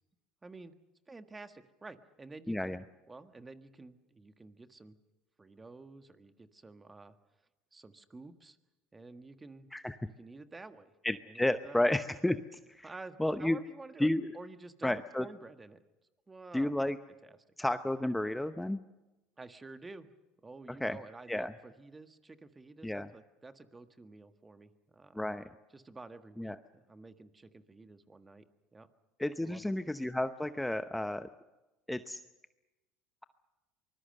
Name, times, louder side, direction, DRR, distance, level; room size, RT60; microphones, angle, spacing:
voice 1, 0.4-0.7 1.1-2.8 3.1-4.9 5.4-7.2 7.7-8.6 8.9-9.7 10.0-10.9 11.2-11.9 12.8-14.1 14.3-15.8 16.3-16.9 17.3-17.4 19.4-20.1 20.4-25.2 25.7-28.4 28.7-28.9 29.4-29.7, right 3 dB, 20° right, 9 dB, 1.6 m, -50 dB
voice 2, 2.5-2.8 9.7-10.0 11.0-12.9 13.2-13.6 14.0-14.3 14.8-15.2 16.5-17.0 17.6-18.8 20.8-21.0 21.3-21.5 22.8-23.1 25.1-25.5 26.4-26.6 29.2-31.3 31.9-32.2, left 1 dB, 5° left, 10 dB, 0.8 m, -32 dB
24.5 x 20.5 x 6.6 m, 1.0 s
hypercardioid pair, 80°, 0 cm